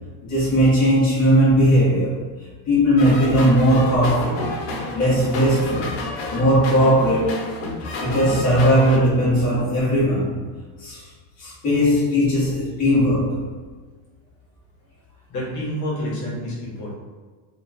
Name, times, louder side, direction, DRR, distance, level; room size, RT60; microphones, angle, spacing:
voice 1, 0.2-2.2 2.7-4.5 4.9-5.9 6.3-7.5 8.0-10.4 10.8-11.1 11.4-13.5, equal, 20° left, -10 dB, 0.8 m, -18 dB
sound 1, 3.0-9.0, left 2 dB, 85° left, 0.8 m, -30 dB
voice 2, 15.3-16.9, equal, 40° left, -5 dB, 1.1 m, -28 dB
2.8 x 2.4 x 3.3 m, 1.4 s
cardioid pair, 160°, 47 cm